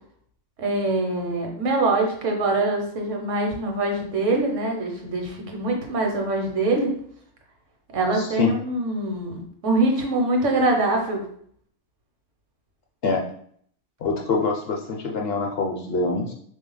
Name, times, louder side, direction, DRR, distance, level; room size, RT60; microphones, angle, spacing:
voice 1, 0.6-6.9 7.9-11.2, right 2 dB, 70° right, 2 dB, 1.2 m, -24 dB
voice 2, 8.1-8.5 13.0-13.2 14.0-16.3, left 4 dB, 60° left, 1 dB, 0.8 m, -25 dB
3.5 x 2.8 x 3.8 m, 0.62 s
omnidirectional pair, 1.3 m